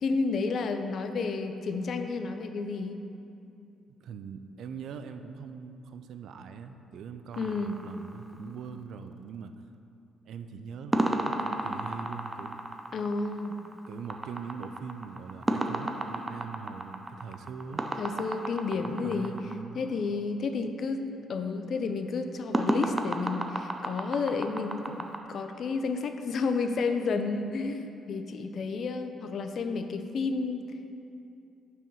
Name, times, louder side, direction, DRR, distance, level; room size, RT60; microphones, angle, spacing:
voice 1, 0.0-3.0 7.4-7.8 12.9-13.5 18.0-19.4 19.7-30.6, left 4 dB, 60° left, 8 dB, 0.5 m, -31 dB
voice 2, 4.0-9.5 10.3-12.6 13.9-17.9 18.7-19.9, right 6 dB, 75° right, 9 dB, 0.4 m, -42 dB
sound 1, 7.3-8.7 10.9-19.5 22.5-25.2, right 1 dB, 20° right, 0.5 m, -32 dB
5.9 x 4.7 x 5.6 m, 2.6 s
cardioid pair, 90°, 0 cm